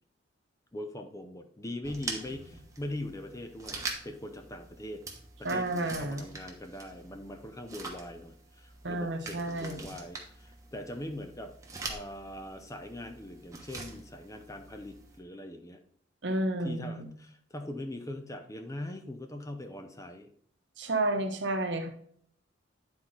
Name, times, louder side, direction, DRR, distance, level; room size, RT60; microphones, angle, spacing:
voice 1, 0.7-5.0 5.4-11.5 11.8-15.8 16.6-20.3, left 1 dB, 15° left, 6 dB, 0.6 m, -41 dB
sound 1, 1.8-15.2, right 3 dB, 15° right, 1.1 m, -44 dB
voice 2, 5.4-6.2 8.8-9.9 16.2-17.1 20.8-21.9, right 2 dB, 65° right, 6 dB, 1.0 m, -31 dB
9.5 x 4.4 x 4.0 m, 0.62 s
head